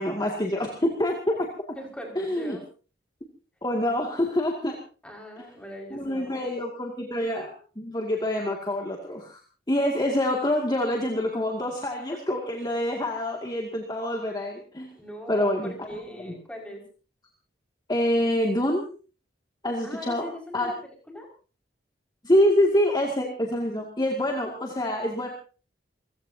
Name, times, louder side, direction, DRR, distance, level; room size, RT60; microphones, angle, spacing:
voice 1, 0.0-1.7 2.2-2.6 3.6-4.8 5.9-9.4 9.7-14.9 15.3-16.3 17.9-18.9 19.6-20.3 20.5-20.7 22.2-25.3, left 1 dB, 25° left, 1 dB, 2.3 m, -26 dB
voice 2, 1.7-2.6 5.0-6.5 15.0-16.9 19.8-21.3, equal, 5° left, 0 dB, 5.5 m, -40 dB
28.5 x 16.0 x 2.8 m, 0.37 s
head